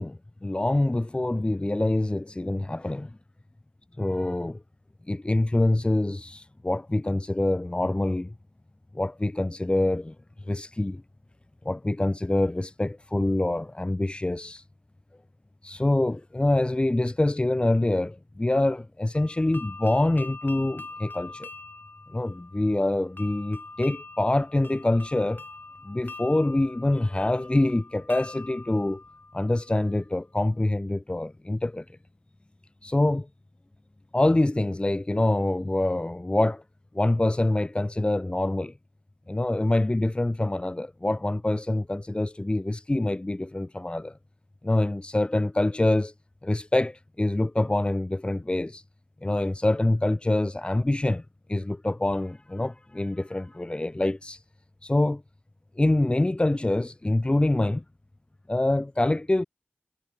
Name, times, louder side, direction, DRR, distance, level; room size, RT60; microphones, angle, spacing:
voice 1, 0.0-3.1 4.0-4.6 5.1-8.3 8.9-10.1 10.5-11.0 11.6-14.6 15.6-21.5 22.1-25.4 25.8-29.0 29.3-31.8 32.8-33.3 34.1-36.6 36.9-38.7 39.3-44.2 44.6-46.1 46.4-48.8 49.2-51.2 51.5-54.4 54.8-55.2 55.8-57.8 58.5-59.4, left 1 dB, 30° left, 3.2 m, -25 dB
sound 1, 19.2-30.0, left 3 dB, 60° left, 7.7 m, -44 dB
wide cardioid pair, 70°, 4 cm